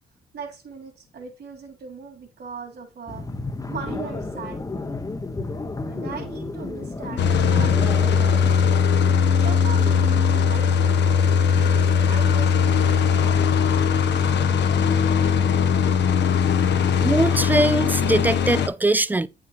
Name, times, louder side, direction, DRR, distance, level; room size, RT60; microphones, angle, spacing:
voice 1, 0.3-3.2 3.7-4.9 5.7-8.9 9.4-10.9 11.5-13.8, right 5 dB, 55° right, 3.0 m, -39 dB
sound 1, 3.1-8.7, left 3 dB, 15° left, 0.8 m, -31 dB
sound 2, 7.2-18.7, left 7 dB, 60° left, 0.8 m, -19 dB
voice 2, 17.0-19.3, right 2 dB, 10° right, 0.4 m, -21 dB
9.1 x 5.8 x 3.1 m
cardioid pair, 90°, 20 cm